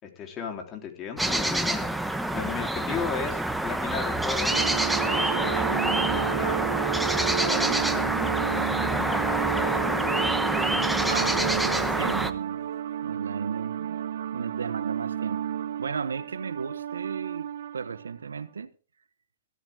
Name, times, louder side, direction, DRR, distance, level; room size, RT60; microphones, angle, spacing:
voice 1, 0.0-4.6 4.9-6.7 7.1-9.9, left 6 dB, 30° left, 3.7 m, -36 dB
sound 1, 1.2-12.3, right 1 dB, 5° right, 1.1 m, -27 dB
sound 2, 4.5-18.1, right 9 dB, 70° right, 0.6 m, -31 dB
sound 3, 4.6-12.8, right 12 dB, 50° right, 3.1 m, -49 dB
voice 2, 11.1-12.7 13.0-14.0 14.3-15.5 15.8-18.7, right 6 dB, 85° right, 1.2 m, -35 dB
16.0 x 13.5 x 3.7 m
hypercardioid pair, 125°, 0 cm